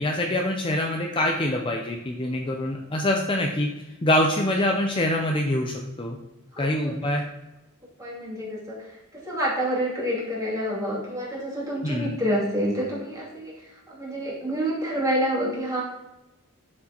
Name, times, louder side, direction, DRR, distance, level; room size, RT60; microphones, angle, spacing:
voice 1, 0.0-3.7 4.0-6.2 6.6-7.2 11.8-12.2, left 1 dB, 25° left, 1 dB, 0.5 m, -25 dB
voice 2, 6.5-7.0 8.0-15.8, equal, 15° right, -6 dB, 2.8 m, -28 dB
11.0 x 6.5 x 3.0 m, 1.0 s
head